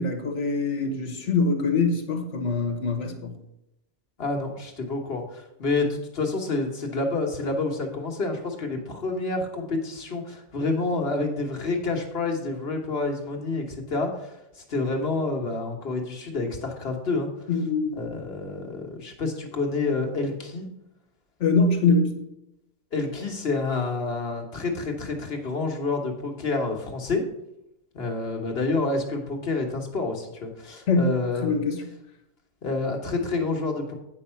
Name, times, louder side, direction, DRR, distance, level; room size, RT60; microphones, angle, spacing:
voice 1, 0.0-3.3 17.5-18.0 21.4-22.2 30.9-31.1 31.4-31.8, left 3 dB, 80° left, 5 dB, 1.6 m, -23 dB
voice 2, 4.2-17.3 17.9-20.7 22.9-27.2 27.9-31.6 32.6-33.9, left 3 dB, 55° left, 2 dB, 1.7 m, -28 dB
9.0 x 5.5 x 5.6 m, 0.85 s
omnidirectional pair, 1.2 m